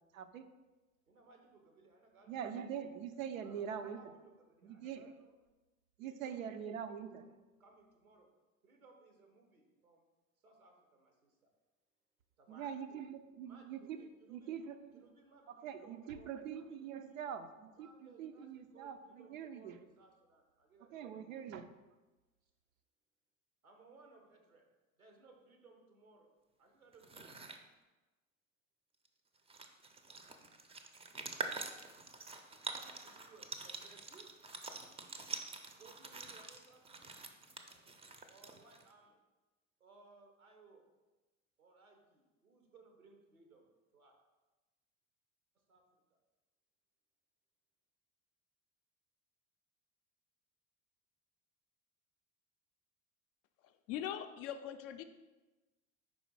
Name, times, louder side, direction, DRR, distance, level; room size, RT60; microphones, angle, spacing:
voice 1, 0.1-0.5 2.3-4.1 4.6-5.1 6.0-7.2 12.5-15.0 15.6-19.8 20.9-21.7, right 8 dB, 70° right, 9 dB, 0.6 m, -44 dB
voice 2, 1.1-2.6 3.4-5.3 6.0-6.4 6.7-8.3 8.6-10.1 10.4-11.5 12.4-12.7 13.4-14.5 14.9-17.3 17.7-21.3 22.4-22.5 23.6-24.7 25.0-26.3 26.6-27.4 32.5-34.3 35.7-37.1 38.2-39.2 39.8-40.9 41.6-44.2 45.5-46.2, right 3 dB, 90° right, 3 dB, 1.0 m, -63 dB
sound 1, 26.9-27.6 29.0-29.1 29.4-38.9, right 4 dB, 15° right, 0.5 m, -46 dB
voice 3, 53.9-55.0, left 10 dB, 40° left, 8 dB, 0.4 m, -41 dB
4.9 x 4.2 x 4.6 m, 1.2 s
figure-of-eight pair, 70°, 41 cm